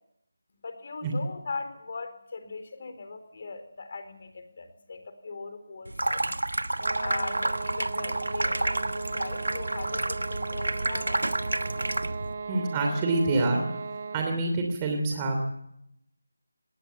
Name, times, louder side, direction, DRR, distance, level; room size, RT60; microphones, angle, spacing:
voice 1, 0.6-6.5 7.0-11.3, left 4 dB, 40° left, 9 dB, 3.8 m, -40 dB
Water tap faucet / Sink (filling or washing), 5.9-12.3, right 2 dB, 90° right, 1.2 m, -30 dB
sound 1, 6.8-14.5, right 4 dB, 40° right, 2.3 m, -37 dB
voice 2, 12.5-13.6 14.1-15.4, right 2 dB, 15° right, 2 dB, 3.1 m, -26 dB
19.0 x 18.5 x 8.6 m, 0.79 s
figure-of-eight pair, 170°, 0 cm